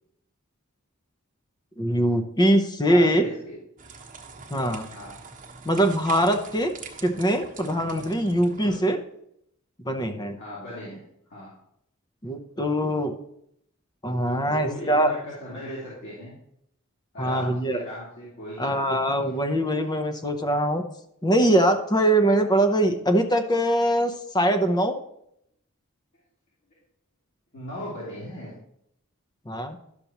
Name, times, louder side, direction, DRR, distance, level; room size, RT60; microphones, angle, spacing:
voice 1, 1.8-3.2 4.5-4.9 5.6-6.7 7.0-9.0 9.8-10.4 12.2-13.2 14.0-15.1 17.2-17.8 18.6-20.8 21.2-25.0 29.5-29.8, right 1 dB, 20° left, 7 dB, 0.8 m, -22 dB
voice 2, 2.8-3.6 4.9-5.2 8.6-8.8 10.4-11.0 11.3-11.5 14.2-16.4 17.1-19.4 27.5-28.6, equal, 55° left, -8 dB, 2.7 m, -38 dB
sound 1, 3.8-8.8, right 5 dB, 40° right, 1.2 m, -44 dB
11.5 x 6.8 x 3.0 m, 0.74 s
head